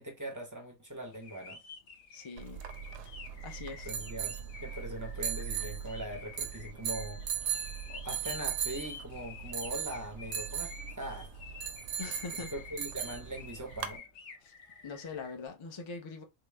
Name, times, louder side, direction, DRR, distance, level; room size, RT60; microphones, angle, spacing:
voice 1, 0.0-1.6 3.8-7.2 7.5-11.3 12.4-14.0, right 1 dB, 20° right, 0.5 m, -41 dB
sound 1, 1.1-15.3, left 5 dB, 85° left, 1.2 m, -50 dB
voice 2, 2.1-2.6 3.0-3.1 3.4-3.9 12.0-12.5 14.4-14.5 14.8-16.2, left 4 dB, 50° left, 0.3 m, -42 dB
sound 2, 2.4-14.0, right 8 dB, 75° right, 0.9 m, -38 dB
3.7 x 2.0 x 3.2 m
omnidirectional pair, 1.4 m